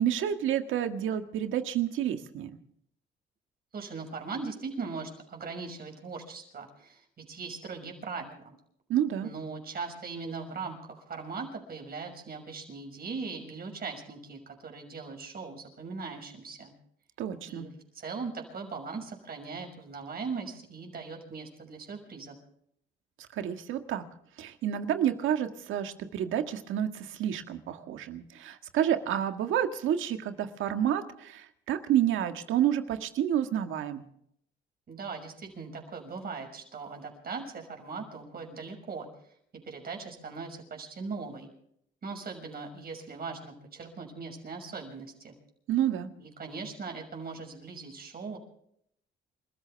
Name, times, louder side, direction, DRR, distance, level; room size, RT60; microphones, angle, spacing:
voice 1, 0.0-2.6 8.9-9.3 17.2-17.7 23.4-24.1 24.4-34.0 45.7-46.1, right 10 dB, 85° right, 7 dB, 1.8 m, -29 dB
voice 2, 3.7-8.6 9.2-16.7 17.5-22.4 34.9-39.1 39.6-41.5 42.0-45.3 46.2-48.4, right 4 dB, 50° right, 3 dB, 6.3 m, -39 dB
29.0 x 14.0 x 3.5 m, 0.70 s
cardioid pair, 90°, 20 cm